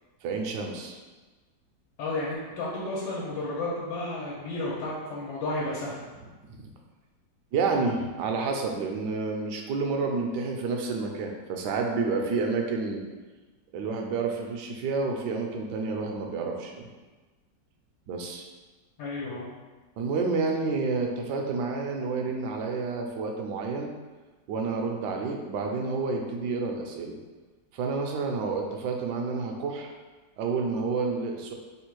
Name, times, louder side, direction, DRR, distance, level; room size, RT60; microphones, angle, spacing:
voice 1, 0.2-1.0 6.5-6.7 7.5-13.0 13.7-16.9 18.1-18.4 20.0-23.9 24.5-27.2 27.7-29.9 30.4-31.5, right 4 dB, 75° right, 2 dB, 1.1 m, -29 dB
voice 2, 2.0-6.0 19.0-19.5, left 2 dB, 85° left, -7 dB, 1.5 m, -32 dB
3.5 x 2.4 x 4.5 m, 1.3 s
omnidirectional pair, 2.0 m